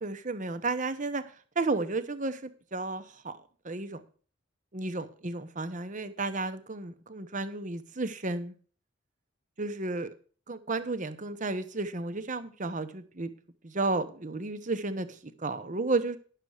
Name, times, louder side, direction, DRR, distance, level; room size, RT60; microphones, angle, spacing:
voice 1, 0.0-1.2 1.6-3.4 3.6-4.0 4.7-8.5 9.6-10.1 10.5-13.3 13.6-16.2, right 3 dB, 40° right, 0.9 m, -32 dB
10.5 x 6.7 x 6.5 m
head